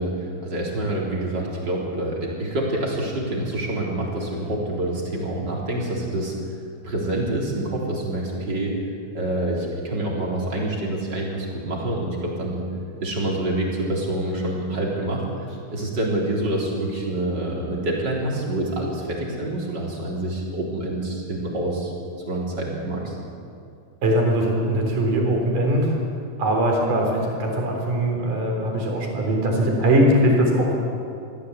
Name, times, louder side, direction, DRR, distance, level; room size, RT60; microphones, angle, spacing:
voice 1, 0.0-6.4 6.8-8.8 9.1-12.6 13.0-21.9 22.3-23.2, right 1 dB, 30° right, -3 dB, 4.1 m, -27 dB
voice 2, 24.0-26.0 26.4-30.8, right 1 dB, 60° right, 0 dB, 5.3 m, -21 dB
24.0 x 15.5 x 8.3 m, 2.5 s
omnidirectional pair, 4.1 m